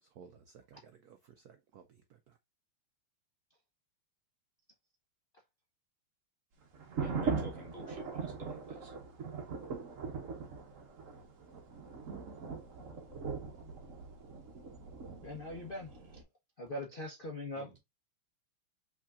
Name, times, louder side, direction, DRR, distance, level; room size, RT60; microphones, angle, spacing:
voice 1, 0.0-2.4, right 7 dB, 80° right, 0.8 m, -57 dB
sound 1, 6.7-16.2, right 5 dB, 45° right, 1.1 m, -40 dB
voice 2, 7.0-8.9 17.5-17.8, equal, 20° right, 1.4 m, -51 dB
voice 3, 15.2-16.2 16.6-17.7, left 1 dB, 80° left, 0.4 m, -42 dB
5.7 x 3.8 x 2.4 m
omnidirectional pair, 2.4 m